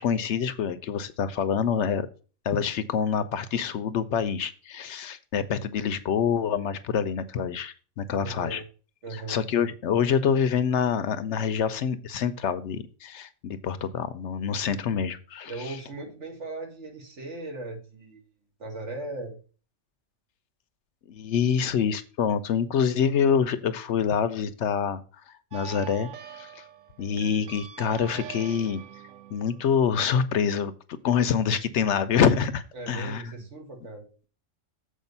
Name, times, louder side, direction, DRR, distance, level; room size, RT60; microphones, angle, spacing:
voice 1, 0.0-2.1 2.4-8.6 9.1-15.8 21.1-25.0 25.3-26.1 26.3-26.6 27.0-28.8 29.3-30.7 31.0-33.3, left 7 dB, 70° left, 12 dB, 0.9 m, -26 dB
voice 2, 8.2-8.6 9.0-9.4 15.5-18.2 18.6-19.4 32.7-34.1, right 2 dB, 65° right, 2 dB, 2.2 m, -38 dB
sound 1, 25.5-30.6, right 10 dB, 85° right, 1.1 m, -44 dB
7.4 x 5.0 x 5.4 m, 0.37 s
omnidirectional pair, 1.3 m